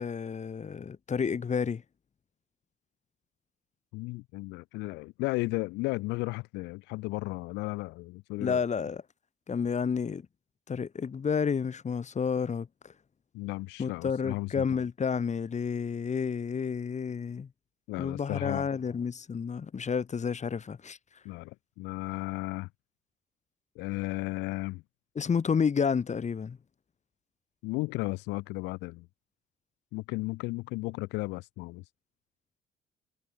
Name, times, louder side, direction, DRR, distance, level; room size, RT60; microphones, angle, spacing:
voice 1, 0.0-1.8 8.4-9.0 9.5-10.2 10.7-12.9 13.8-17.5 18.0-21.0 25.2-26.6, left 6 dB, 40° left, 2.6 m, -30 dB
voice 2, 3.9-8.6 13.3-14.7 17.9-18.7 21.2-22.7 23.8-24.8 27.6-29.1 29.9-31.8, left 23 dB, 70° left, 5.5 m, -34 dB
figure-of-eight pair, 45°, 18 cm